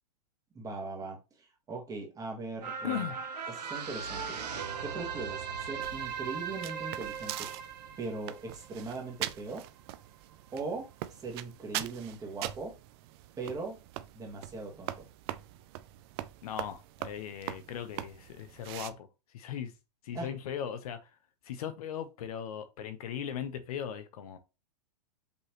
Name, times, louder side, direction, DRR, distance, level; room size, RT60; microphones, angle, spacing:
voice 1, 0.5-3.1 3.5-7.5 8.0-9.6 10.5-12.8 13.4-13.8 14.1-15.1 20.1-20.3, right 3 dB, 15° right, 1.4 m, -40 dB
sound 1, 2.6-9.3 9.7-9.8, right 6 dB, 75° right, 1.1 m, -38 dB
voice 2, 2.8-3.2 16.4-19.1 19.3-19.7 20.0-21.1 21.4-24.4, left 9 dB, 60° left, 0.9 m, -38 dB
sound 2, 5.8-18.9, right 14 dB, 40° right, 0.4 m, -42 dB
5.4 x 3.1 x 3.0 m
hypercardioid pair, 135°, 21 cm